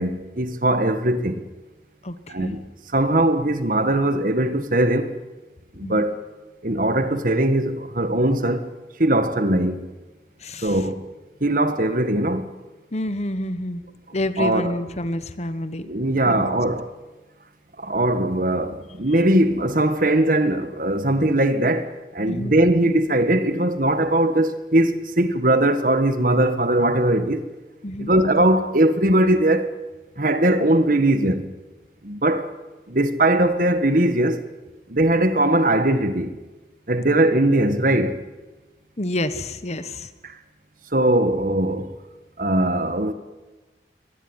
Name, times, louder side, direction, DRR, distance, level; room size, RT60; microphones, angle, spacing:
voice 1, 0.0-1.4 2.3-2.6 2.9-5.1 5.7-6.1 6.6-8.7 9.0-9.9 10.6-11.0 11.4-12.5 14.4-14.7 15.8-16.9 17.8-27.4 28.0-29.7 30.2-31.5 32.0-32.5 32.9-34.4 34.9-36.4 36.9-38.2 40.2-40.3 40.9-41.9 42.4-43.1, right 1 dB, 50° right, 1.7 m, -20 dB
voice 2, 2.0-2.6 5.8-6.1 10.4-10.8 12.9-13.8 14.1-15.9 16.3-16.6 22.3-22.6 27.8-28.1 39.0-40.1, left 1 dB, 40° left, 1.3 m, -28 dB
23.5 x 19.5 x 9.9 m
head